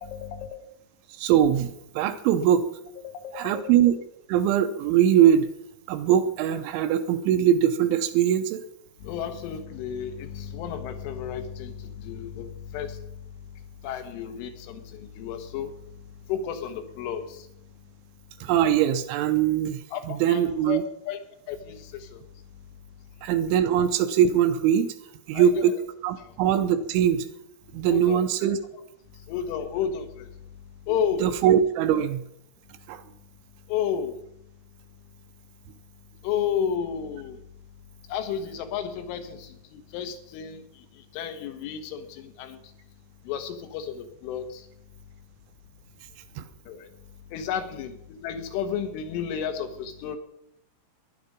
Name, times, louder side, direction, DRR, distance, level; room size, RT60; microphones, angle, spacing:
voice 1, 0.0-0.5 3.2-3.6 9.0-13.0 13.8-15.7 16.3-17.4 19.9-21.2 21.5-22.2 25.3-25.8 26.2-26.3 27.8-28.2 29.3-30.3 30.9-31.3 33.7-34.2 36.2-37.4 38.1-40.6 41.1-42.6 43.3-44.7 46.7-46.9 47.3-50.2, left 8 dB, 85° left, 6 dB, 3.9 m, -32 dB
voice 2, 1.2-2.7 3.3-4.0 4.3-5.5 5.9-8.6 18.4-20.8 23.2-24.9 25.3-25.8 26.0-27.3 27.7-28.6 31.2-32.3 32.9-33.0 46.4-46.5, right 9 dB, 85° right, 9 dB, 3.2 m, -22 dB
15.5 x 11.0 x 5.1 m, 0.75 s
omnidirectional pair, 5.5 m